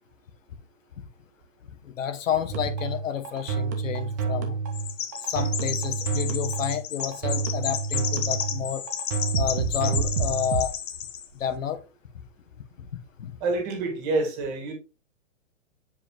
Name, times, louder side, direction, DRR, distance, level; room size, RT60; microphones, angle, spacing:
voice 1, 1.8-4.6 5.2-8.8 9.3-10.7 11.3-11.8 12.8-12.9 13.2-13.3, left 9 dB, 80° left, 1.1 m, -30 dB
sound 1, 2.5-10.7, right 5 dB, 15° right, 0.4 m, -28 dB
Chirp tweet, 4.7-11.3, left 9 dB, 55° left, 0.9 m, -32 dB
voice 2, 13.4-14.7, right 3 dB, 35° right, 2.0 m, -27 dB
7.1 x 4.9 x 2.9 m
hypercardioid pair, 150°, 38 cm